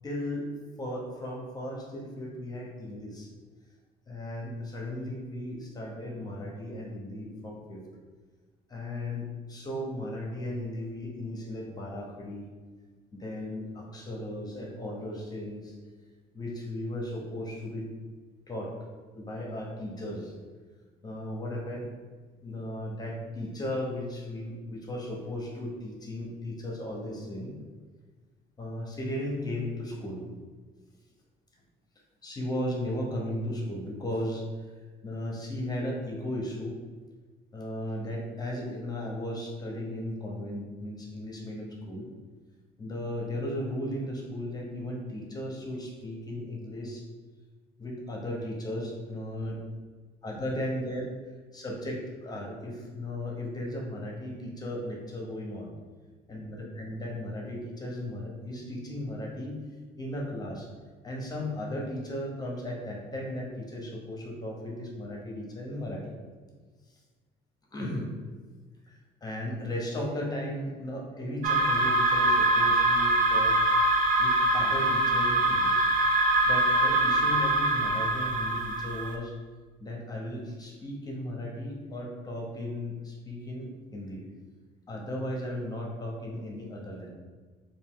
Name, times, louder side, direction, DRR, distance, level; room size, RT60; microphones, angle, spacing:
voice 1, 0.0-0.5 0.8-3.3 4.1-7.8 8.7-12.5 13.1-15.7 16.3-17.9 18.5-18.7 19.1-20.3 21.0-21.9 22.4-27.6 28.6-30.2 32.2-34.8 35.0-36.8 37.5-42.1 42.8-47.0 47.8-49.6 50.2-51.1 51.5-55.7 56.3-59.6 60.0-60.7 61.0-66.2 67.7-68.1 68.8-73.6 74.2-75.8 76.4-79.3 79.8-84.2 84.9-87.1, left 1 dB, 25° left, -2 dB, 0.9 m, -36 dB
sound 1, 71.4-79.2, right 2 dB, 50° right, 0.5 m, -24 dB
3.4 x 2.7 x 3.7 m, 1.4 s
cardioid pair, 110°, 17 cm